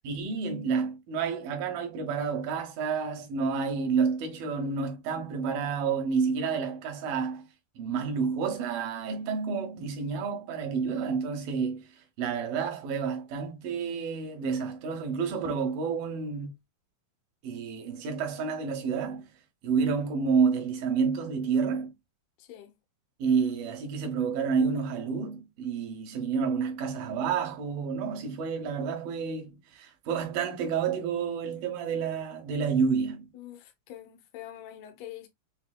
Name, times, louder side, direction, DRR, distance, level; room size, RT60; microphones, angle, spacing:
voice 1, 0.0-7.5 7.8-11.9 12.2-16.5 17.4-19.3 19.6-21.9 23.2-33.3, right 5 dB, 75° right, 2.9 m, -29 dB
voice 2, 22.4-22.8 33.3-35.3, left 12 dB, 80° left, 1.5 m, -45 dB
7.4 x 2.8 x 2.2 m
omnidirectional pair, 4.3 m